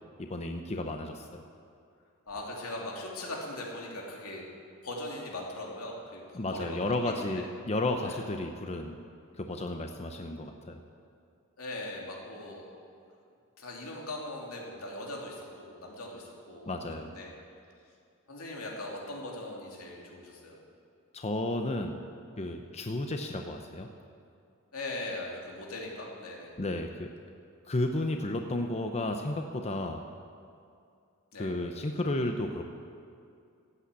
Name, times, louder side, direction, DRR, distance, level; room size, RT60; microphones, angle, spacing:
voice 1, 0.2-1.4 6.3-9.0 9.4-10.8 16.7-17.1 21.1-21.9 22.4-23.9 26.6-27.1 27.7-30.0 31.4-32.6, left 2 dB, 30° left, 5 dB, 0.7 m, -33 dB
voice 2, 2.3-4.4 4.8-6.8 7.0-7.4 8.0-8.2 11.6-13.0 13.6-17.3 18.3-20.5 24.7-26.5 31.3-31.5, left 1 dB, 85° left, -2 dB, 2.8 m, -40 dB
15.5 x 8.7 x 8.3 m, 2.4 s
head